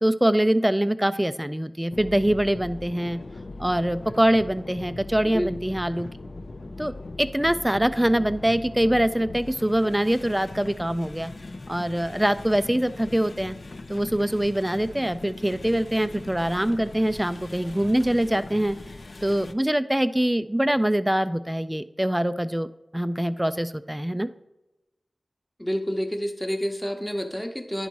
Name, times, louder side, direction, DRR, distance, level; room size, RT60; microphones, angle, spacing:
voice 1, 0.0-3.2 3.6-6.1 6.8-6.9 7.2-11.3 11.7-13.5 13.9-18.8 19.2-22.7 22.9-24.3, right 1 dB, 10° right, 13 dB, 0.4 m, -24 dB
sound 1, 1.9-19.5, left 2 dB, 65° left, 0.5 m, -40 dB
voice 2, 5.2-5.5 25.6-27.9, equal, 10° left, 5 dB, 0.9 m, -29 dB
10.0 x 4.1 x 4.6 m, 0.95 s
cardioid pair, 45°, 0 cm